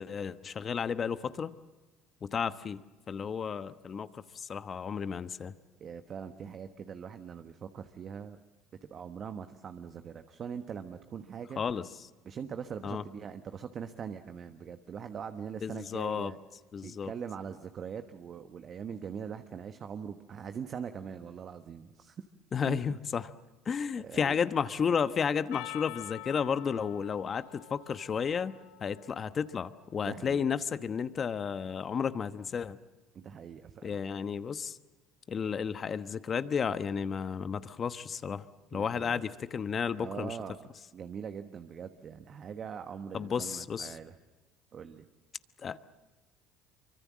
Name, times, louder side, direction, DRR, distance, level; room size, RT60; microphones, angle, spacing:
voice 1, 0.0-1.5 2.2-2.8 3.1-5.5 11.6-11.8 12.8-13.0 15.6-16.3 16.7-17.1 22.5-23.3 23.6-28.5 28.8-32.8 33.8-34.8 35.3-38.5 38.7-40.4 43.1-44.0 45.6-45.8, left 6 dB, 35° left, 13 dB, 1.1 m, -32 dB
voice 2, 5.8-8.4 8.9-11.6 12.2-16.4 16.8-22.2 22.6-22.9 24.0-24.4 30.0-30.5 33.1-34.0 38.7-39.2 40.0-40.6 40.9-44.2 44.7-45.1, right 7 dB, 45° right, 8 dB, 1.3 m, -42 dB
Percussion, 25.5-30.1, left 18 dB, 75° left, 1.0 m, -47 dB
25.5 x 24.5 x 7.5 m, 1.2 s
supercardioid pair, 100°, 0 cm